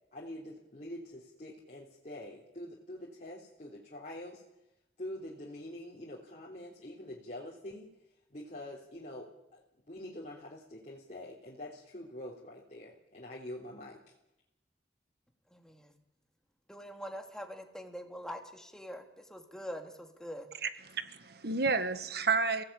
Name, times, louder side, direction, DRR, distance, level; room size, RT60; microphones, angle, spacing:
voice 1, 0.1-4.4 5.0-7.9 8.3-9.6 9.9-14.0, left 1 dB, 45° left, 3.5 m, -45 dB
voice 2, 15.5-15.9 16.7-20.5, equal, 5° left, 2.7 m, -44 dB
voice 3, 20.6-22.6, right 4 dB, 65° right, 1.7 m, -31 dB
30.0 x 17.5 x 8.7 m
head